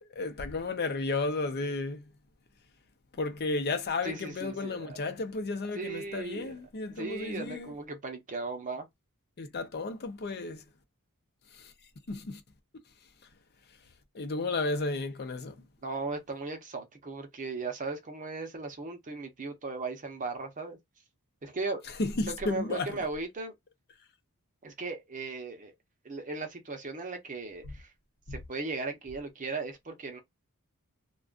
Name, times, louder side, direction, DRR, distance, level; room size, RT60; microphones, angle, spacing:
voice 1, 0.0-2.0 3.1-7.7 9.4-10.6 11.5-11.7 12.1-12.4 14.1-15.6 22.0-23.0 28.3-28.4, left 3 dB, 45° left, 0.6 m, -33 dB
voice 2, 4.0-5.0 5.7-6.6 6.9-8.9 15.8-20.8 21.4-21.9 22.2-23.5 24.6-25.7 26.0-27.9 28.3-30.2, right 3 dB, 35° right, 0.7 m, -37 dB
2.3 x 2.3 x 2.4 m
head